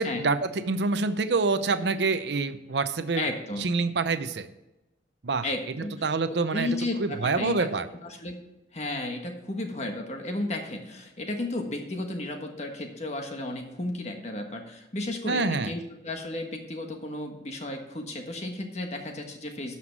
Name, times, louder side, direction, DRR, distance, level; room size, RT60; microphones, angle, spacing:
voice 1, 0.0-3.3 3.6-4.5 5.2-5.5 6.0-6.7 7.0-7.9 15.3-15.7, right 4 dB, 70° right, 11 dB, 0.7 m, -26 dB
voice 2, 3.2-3.7 5.4-7.7 8.0-8.4 8.7-19.8, left 2 dB, 35° left, 3 dB, 1.4 m, -33 dB
12.0 x 5.8 x 4.6 m, 0.98 s
head